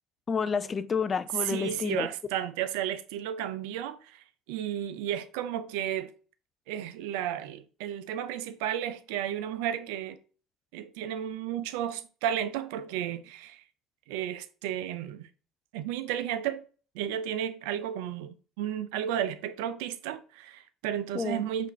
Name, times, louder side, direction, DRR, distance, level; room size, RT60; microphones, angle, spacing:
voice 1, 0.3-2.1 21.1-21.4, left 5 dB, 35° left, 0.4 m, -29 dB
voice 2, 1.3-6.1 6.7-10.2 10.7-13.6 14.1-15.3 15.7-16.6 16.9-21.7, right 10 dB, 75° right, 0.4 m, -33 dB
5.7 x 2.5 x 3.1 m
hypercardioid pair, 65°, 0 cm